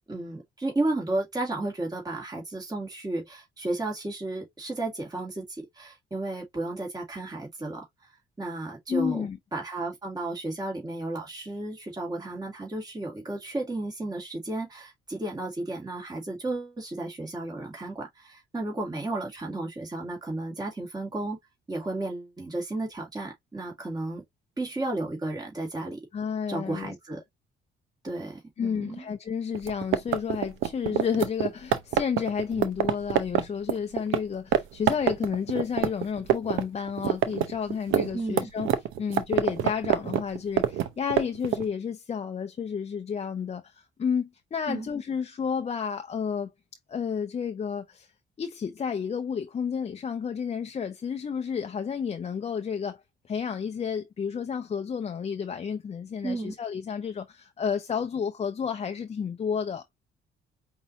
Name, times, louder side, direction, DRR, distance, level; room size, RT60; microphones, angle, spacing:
voice 1, 0.1-8.1 8.4-9.3 9.5-21.4 21.7-24.2 24.6-26.0 26.5-27.2 28.0-29.1 38.1-38.5 44.7-44.9 56.2-56.5, right 2 dB, 20° right, 2.3 m, -33 dB
voice 2, 8.9-9.4 26.1-26.9 28.6-38.7 39.0-46.5 46.9-48.1 48.4-53.0 53.3-59.8, left 7 dB, 35° left, 0.5 m, -31 dB
sound 1, 29.5-34.2 34.5-34.6 34.9-36.6 36.9-41.7, right 10 dB, 85° right, 0.7 m, -25 dB
5.3 x 2.7 x 2.8 m
cardioid pair, 90°, 20 cm